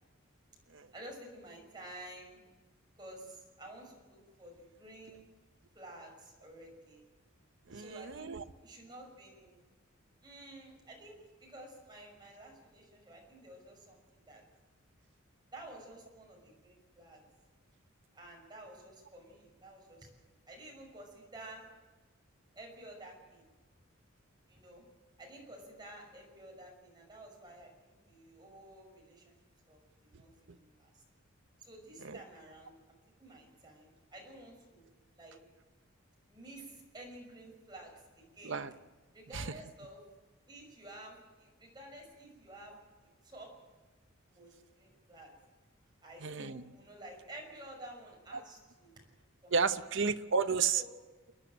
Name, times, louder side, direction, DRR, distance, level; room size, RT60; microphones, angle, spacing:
voice 1, 0.9-2.4 3.0-5.3 5.7-7.0 7.7-8.3 8.6-9.7 10.2-14.4 15.5-17.2 18.1-20.1 20.5-21.6 22.5-23.5 24.5-24.8 25.2-29.3 29.7-30.3 30.5-31.0 31.6-34.9 35.2-35.4 36.3-38.6 39.1-40.0 40.5-42.8 43.0-43.5 44.3-45.3 46.0-48.9 49.4-49.5 50.7-50.9, right 1 dB, 20° right, 0 dB, 6.1 m, -51 dB
voice 2, 7.7-8.4 30.5-30.6 32.0-32.2 38.4-38.7 39.3-39.5 46.2-46.6 48.3-48.4 49.5-50.8, right 5 dB, 65° right, 10 dB, 0.9 m, -32 dB
29.5 x 10.5 x 9.1 m, 1.2 s
head